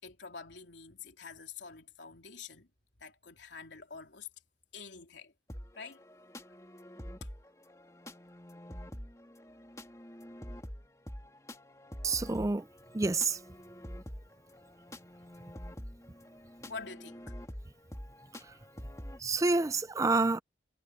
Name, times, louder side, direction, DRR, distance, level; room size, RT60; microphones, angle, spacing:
voice 1, 0.0-2.7 3.0-4.3 4.7-5.3 5.8-6.0 6.5-6.6 7.2-7.3 16.7-17.3, left 5 dB, 85° left, 3.6 m, -47 dB
sound 1, 5.5-19.2, equal, 20° left, 2.9 m, -47 dB
voice 2, 12.0-12.7 12.9-13.4 18.3-18.6 19.2-20.4, right 3 dB, 20° right, 0.4 m, -28 dB
head